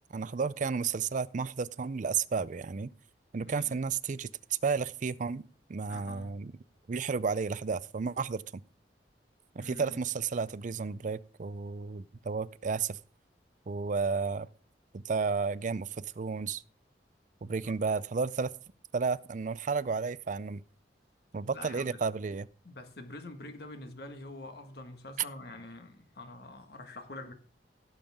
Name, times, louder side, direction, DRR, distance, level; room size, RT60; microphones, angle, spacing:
voice 1, 0.1-2.9 3.3-4.3 4.6-5.4 5.7-6.5 6.9-8.4 9.6-13.0 13.7-14.5 14.9-16.6 17.4-18.5 18.9-20.6 21.3-22.5, right 5 dB, 45° right, 0.4 m, -32 dB
voice 2, 3.4-3.8 5.8-6.3 9.6-10.0 17.6-17.7 21.5-22.0 22.6-27.3, left 2 dB, 65° left, 1.7 m, -46 dB
17.0 x 7.0 x 3.6 m
head